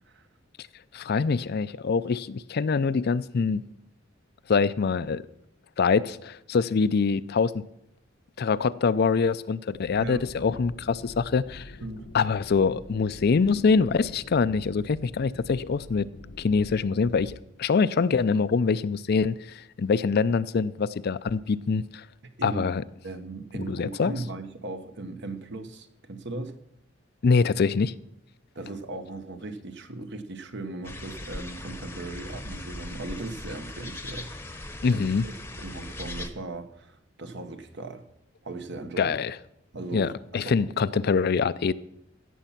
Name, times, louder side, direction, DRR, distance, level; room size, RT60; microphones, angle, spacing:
voice 1, 0.9-3.6 4.5-5.2 5.8-7.6 8.4-11.7 12.1-16.1 16.4-22.0 22.4-22.8 23.7-24.1 27.2-27.9 34.8-35.3 39.0-39.4 39.9-41.7, left 5 dB, 55° left, 16 dB, 0.4 m, -24 dB
sound 1, 9.7-17.4, left 1 dB, 85° left, 0.9 m, -46 dB
voice 2, 23.0-26.6 28.5-34.3 34.6-38.1 38.4-39.2 39.7-40.6 40.9-41.0, right 2 dB, 60° right, 8 dB, 1.1 m, -38 dB
sound 2, 30.8-36.3, left 1 dB, 10° left, 0.9 m, -39 dB
15.5 x 7.1 x 5.8 m, 0.77 s
head